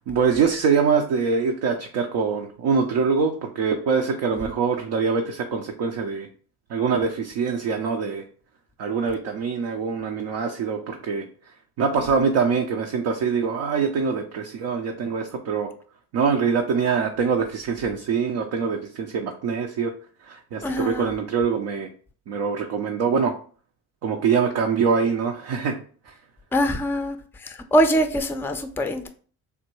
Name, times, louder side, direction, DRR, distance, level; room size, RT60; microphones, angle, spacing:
voice 1, 0.1-6.3 6.7-8.2 8.8-11.3 11.8-15.7 16.1-19.9 20.2-21.9 22.3-23.3 24.0-25.8 26.1-26.2, right 5 dB, 70° right, 3 dB, 0.6 m, -24 dB
voice 2, 20.6-21.1 26.5-27.2 27.4-29.1, equal, 5° left, 7 dB, 0.3 m, -23 dB
3.4 x 2.2 x 3.0 m, 0.43 s
supercardioid pair, 65°, 42 cm